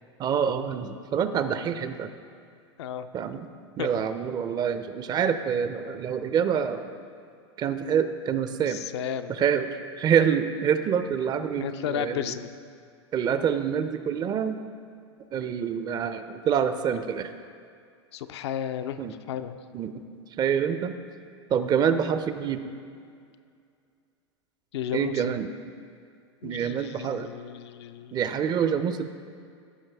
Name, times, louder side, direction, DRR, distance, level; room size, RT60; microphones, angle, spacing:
voice 1, 0.2-2.1 3.1-3.5 3.8-6.8 7.6-8.8 9.3-9.7 10.0-12.4 13.1-14.6 15.3-17.3 19.0-19.1 19.7-20.0 20.4-21.0 21.5-22.6 24.9-25.5 26.4-27.3 28.1-29.1, right 7 dB, 30° right, 10 dB, 0.4 m, -26 dB
voice 2, 8.7-9.3 11.6-12.5 18.1-19.0 19.3-19.6 24.7-25.3 26.4-28.3, left 9 dB, 65° left, 9 dB, 0.5 m, -33 dB
14.0 x 5.8 x 3.4 m, 2.3 s
hypercardioid pair, 95°, 15 cm